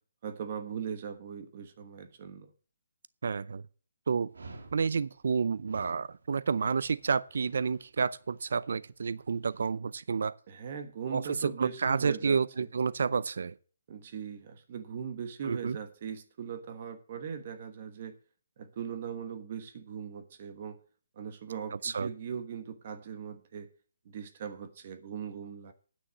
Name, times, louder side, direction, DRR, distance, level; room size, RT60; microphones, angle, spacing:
voice 1, 0.2-2.5 10.5-12.7 13.9-18.2 18.6-20.8 21.2-23.7 24.0-25.7, right 7 dB, 35° right, 1.2 m, -40 dB
voice 2, 3.2-3.6 4.1-4.3 4.7-10.3 11.1-13.5 15.4-15.8 21.8-22.1, right 5 dB, 60° right, 0.5 m, -30 dB
Dog, 4.3-9.7, right 3 dB, 90° right, 2.4 m, -53 dB
9.7 x 6.3 x 8.2 m
hypercardioid pair, 170°, 0 cm